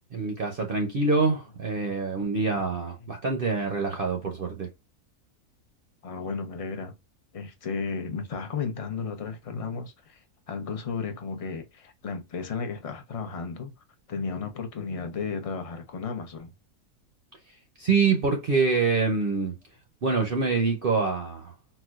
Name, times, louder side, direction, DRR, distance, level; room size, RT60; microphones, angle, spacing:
voice 1, 0.1-4.7 17.8-19.5 20.0-21.5, right 4 dB, 50° right, 0.7 m, -25 dB
voice 2, 6.0-6.9 7.3-13.7 14.1-16.5, left 5 dB, 45° left, 0.4 m, -34 dB
4.1 x 2.2 x 2.4 m
omnidirectional pair, 1.5 m